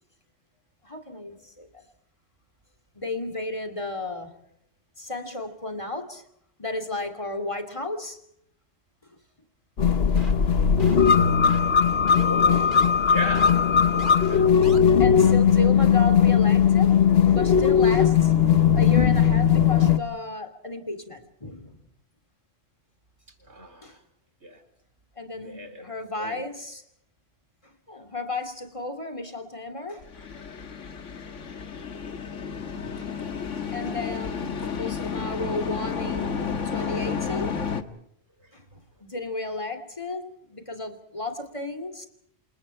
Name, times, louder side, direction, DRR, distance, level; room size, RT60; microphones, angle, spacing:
voice 1, 0.8-1.8 2.9-4.4 5.0-6.2 6.6-8.2 10.4-10.5 12.5-12.7 15.0-17.0 17.3-18.3 18.7-21.8 23.8-24.0 25.2-26.8 27.6-30.1 33.7-37.6 38.5-42.1, left 2 dB, 25° left, 2.9 m, -33 dB
sound 1, 9.8-20.0, left 7 dB, 55° left, 1.4 m, -19 dB
sound 2, 10.2-10.5 10.8-11.1 11.4-11.7 12.1-12.2 12.7-12.9 13.3-13.5 14.0-14.1 14.6-14.8, right 2 dB, 40° right, 3.2 m, -40 dB
voice 2, 11.4-11.9 12.2-14.5 23.5-24.0 24.4-24.6 25.4-26.5 32.5-33.1 34.6-34.8 36.7-37.0, equal, 65° right, 4.0 m, -37 dB
sound 3, 30.0-37.8, left 6 dB, 80° left, 1.9 m, -31 dB
28.5 x 27.5 x 4.5 m
omnidirectional pair, 1.3 m